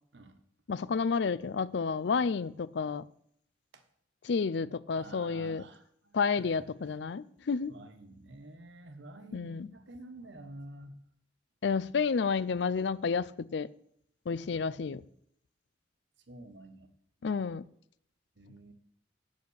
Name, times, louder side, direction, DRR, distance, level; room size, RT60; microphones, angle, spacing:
voice 1, 0.7-3.0 4.2-5.6 6.1-7.7 9.3-9.7 11.6-13.7 14.3-15.0 17.2-17.7, left 5 dB, 65° left, 18 dB, 0.4 m, -30 dB
voice 2, 4.9-7.0 7.7-10.9 16.3-16.9 18.4-18.7, right 2 dB, 70° right, 8 dB, 1.3 m, -49 dB
8.4 x 8.3 x 6.4 m, 0.68 s
head